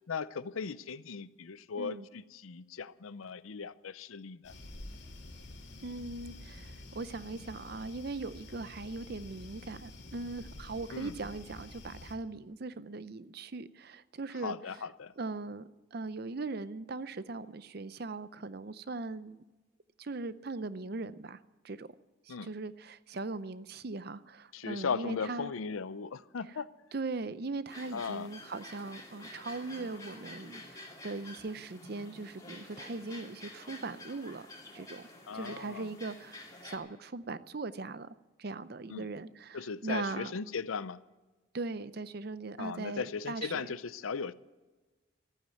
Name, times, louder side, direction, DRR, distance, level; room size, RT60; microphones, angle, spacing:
voice 1, 0.1-4.5 10.9-11.1 14.4-15.1 22.3-22.5 24.5-26.7 27.9-28.3 35.3-35.9 38.9-39.1 39.5-41.0 42.6-44.3, left 5 dB, 90° left, 0.6 m, -38 dB
sound 1, 4.4-12.1, left 2 dB, 60° left, 2.3 m, -48 dB
voice 2, 5.8-14.6 15.2-19.4 20.0-21.4 21.6-21.9 22.3-25.5 26.9-34.5 34.7-35.1 35.3-38.1 38.4-40.3 41.5-43.8, right 3 dB, 50° right, 0.6 m, -40 dB
Guinea Fowl Sea and Tweets, 27.7-36.8, left 1 dB, 20° left, 2.5 m, -49 dB
14.5 x 9.4 x 9.2 m
head